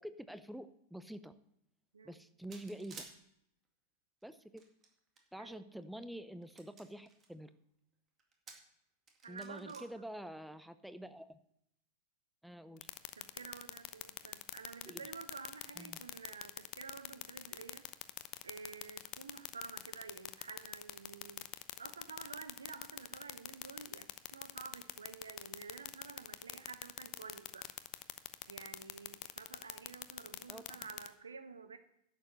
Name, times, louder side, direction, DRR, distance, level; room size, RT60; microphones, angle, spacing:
voice 1, 0.0-1.3 2.0-3.0 4.2-4.6 5.3-7.5 9.3-11.4 12.4-12.9 14.9-15.0 15.8-16.0 30.5-30.8, right 1 dB, ahead, 12 dB, 0.7 m, -47 dB
sound 1, 2.5-3.1 4.2-5.2 5.8-5.9 6.4-7.3 8.2-8.7 9.1-9.8, right 5 dB, 25° right, 2.2 m, -53 dB
voice 2, 9.2-9.9 13.2-17.9 18.4-21.5 21.8-27.7 28.5-31.8, right 5 dB, 75° right, 10 dB, 1.0 m, -50 dB
sound 2, 12.8-31.1, left 18 dB, 40° left, 0.7 m, -42 dB
11.0 x 7.3 x 6.7 m, 0.77 s
figure-of-eight pair, 90°, 0 cm